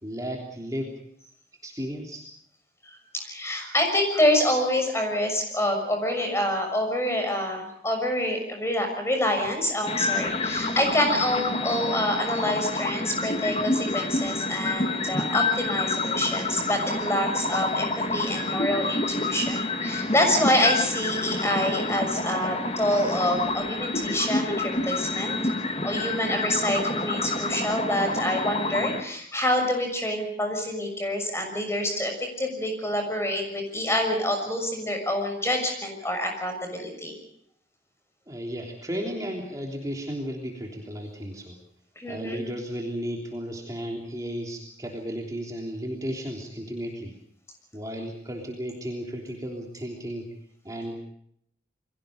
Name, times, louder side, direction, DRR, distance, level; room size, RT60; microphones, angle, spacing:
voice 1, 0.0-0.9 1.6-2.2 38.3-41.6 42.1-47.1 47.7-50.3 50.6-51.0, equal, 20° right, 0 dB, 3.4 m, -34 dB
voice 2, 2.8-25.4 25.8-37.1 42.0-42.4, left 1 dB, 15° left, 4 dB, 6.4 m, -27 dB
sound 1, 9.8-29.0, left 2 dB, 35° left, 2.0 m, -28 dB
29.5 x 23.0 x 5.3 m, 0.70 s
head